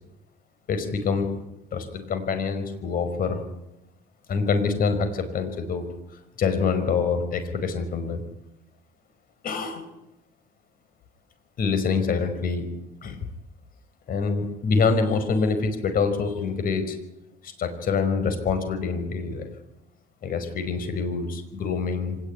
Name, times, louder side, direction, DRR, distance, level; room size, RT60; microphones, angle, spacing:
voice 1, 0.7-1.3 1.7-3.4 4.3-5.9 6.4-8.2 9.4-9.8 11.6-12.6 13.0-13.2 14.1-17.0 17.4-19.4 20.2-22.2, left 5 dB, 60° left, 9 dB, 5.1 m, -25 dB
25.0 x 19.0 x 9.8 m, 0.85 s
cardioid pair, 110°, 17 cm